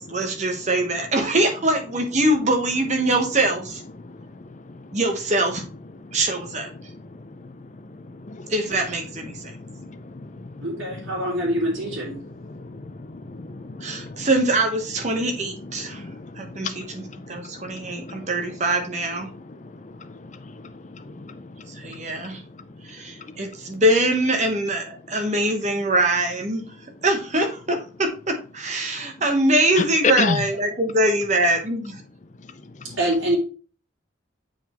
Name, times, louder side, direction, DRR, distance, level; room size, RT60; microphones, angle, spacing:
voice 1, 0.1-3.8 4.9-5.6 6.1-6.7 8.5-9.5 13.8-16.0 16.4-19.3 21.8-22.4 22.8-26.6 27.0-32.0, right 1 dB, 35° right, 1.1 m, -23 dB
voice 2, 7.1-7.5 8.1-8.5 9.3-10.7 12.5-14.3 15.6-18.3 19.5-21.7 22.1-22.2 29.8-30.4, left 4 dB, 35° left, 0.5 m, -32 dB
voice 3, 10.6-12.2 33.0-33.4, right 1 dB, 70° right, 2.6 m, -25 dB
7.1 x 5.1 x 3.0 m
head